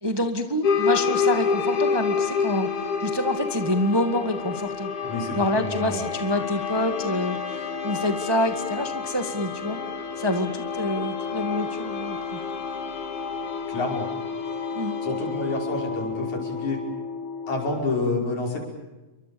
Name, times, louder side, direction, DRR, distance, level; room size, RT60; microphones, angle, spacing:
voice 1, 0.0-2.7 3.0-4.9 5.3-9.8 10.2-12.4 14.7-14.9, left 1 dB, 10° right, 7 dB, 1.2 m, -27 dB
sound 1, 0.6-17.8, left 5 dB, 90° left, 4.5 m, -29 dB
voice 2, 5.0-6.1 13.7-14.1 15.0-16.8 17.5-18.6, left 2 dB, 75° left, 0 dB, 7.0 m, -28 dB
29.5 x 24.0 x 7.0 m, 1.1 s
omnidirectional pair, 3.3 m